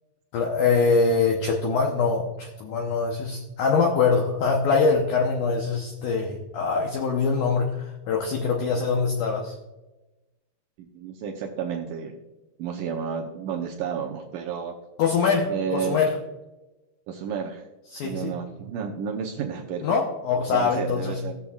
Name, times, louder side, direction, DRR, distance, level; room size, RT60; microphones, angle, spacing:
voice 1, 0.3-9.6 15.0-16.1 17.9-18.3 19.8-21.2, left 4 dB, 85° left, 1 dB, 1.8 m, -23 dB
voice 2, 10.8-12.2 12.6-14.7 15.5-16.0 17.1-17.6 18.0-20.0 20.5-21.4, right 7 dB, 85° right, 1 dB, 1.9 m, -31 dB
18.0 x 7.0 x 2.3 m, 1.1 s
omnidirectional pair, 4.9 m